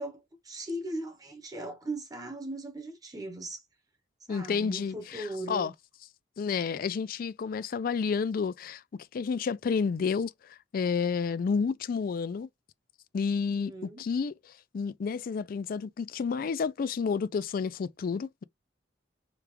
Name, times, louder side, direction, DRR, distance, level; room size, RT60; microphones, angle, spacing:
voice 1, 0.0-3.6 4.3-5.7 13.5-14.0, right 1 dB, 20° right, 0.8 m, -38 dB
voice 2, 4.3-5.7 6.4-8.8 9.1-10.3 10.7-12.5 13.1-14.3 14.7-18.4, left 5 dB, 50° left, 0.3 m, -30 dB
5.0 x 2.3 x 2.9 m
head